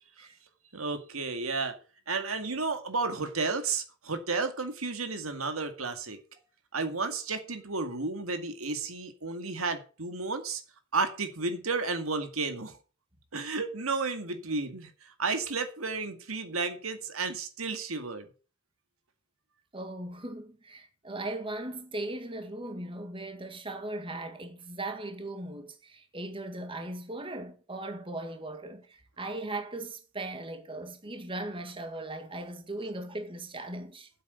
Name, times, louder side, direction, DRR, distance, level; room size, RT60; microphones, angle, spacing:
voice 1, 0.7-1.8 2.1-6.2 6.7-10.6 10.9-12.8 13.3-18.3, right 4 dB, 80° right, 2.1 m, -32 dB
voice 2, 19.7-34.1, right 2 dB, 25° right, 1.9 m, -38 dB
9.3 x 8.1 x 8.1 m
head